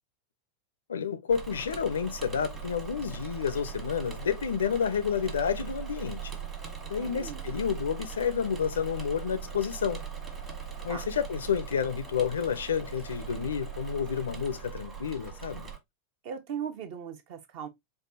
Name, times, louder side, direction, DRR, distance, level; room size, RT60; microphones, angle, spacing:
voice 1, 0.9-6.3 6.9-10.0 10.8-15.7, left 7 dB, 70° left, 0.5 m, -30 dB
Engine / Mechanisms, 1.3-15.8, right 7 dB, 25° right, 1.2 m, -40 dB
voice 2, 7.0-7.5 10.9-11.1 16.2-17.7, right 8 dB, 45° right, 0.8 m, -38 dB
4.6 x 2.4 x 2.6 m
figure-of-eight pair, 90°, 0 cm